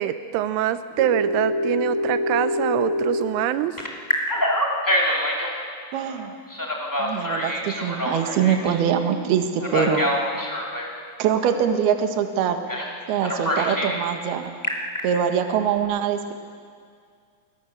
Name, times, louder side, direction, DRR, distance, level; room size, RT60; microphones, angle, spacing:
voice 1, 0.0-3.8, right 12 dB, 80° right, 12 dB, 3.1 m, -24 dB
Telephone, 1.0-3.2 3.8-5.5 6.5-8.8 9.6-10.9 12.7-12.9 13.2-14.0 14.4-15.0, left 1 dB, 10° left, 0.8 m, -25 dB
voice 2, 5.9-6.4 7.0-10.1 11.2-12.7 13.1-14.6 15.0-16.3, right 8 dB, 60° right, 6 dB, 3.0 m, -23 dB
28.5 x 22.5 x 6.8 m, 2.2 s
omnidirectional pair, 5.9 m